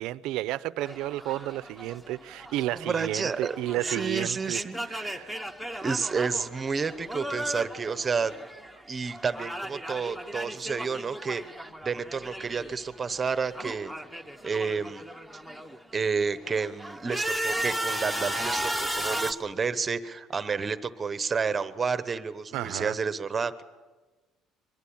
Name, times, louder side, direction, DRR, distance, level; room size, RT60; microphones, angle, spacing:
voice 1, 0.0-4.6 4.9-5.3 5.7-5.9 22.5-22.9, right 15 dB, 75° right, 0.7 m, -32 dB
sound 1, 0.8-8.8 9.1-12.8 13.1-15.8 16.3-19.3, right 1 dB, 5° left, 1.0 m, -35 dB
voice 2, 2.7-3.6 3.8-4.8 5.8-8.3 8.9-13.9 14.4-15.0 15.9-23.6, right 5 dB, 20° right, 0.9 m, -30 dB
23.0 x 21.5 x 8.7 m
cardioid pair, 160°, 0 cm